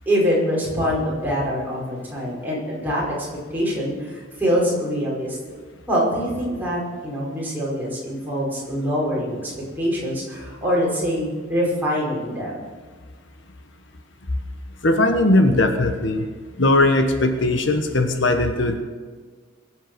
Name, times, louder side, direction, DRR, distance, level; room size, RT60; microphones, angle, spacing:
voice 1, 0.0-3.3 3.5-5.4 5.9-9.5 9.8-12.7, equal, 10° right, -6 dB, 5.0 m, -24 dB
voice 2, 14.8-16.3 16.6-18.8, left 2 dB, 65° left, 6 dB, 1.2 m, -19 dB
22.0 x 7.9 x 6.1 m, 1.5 s
head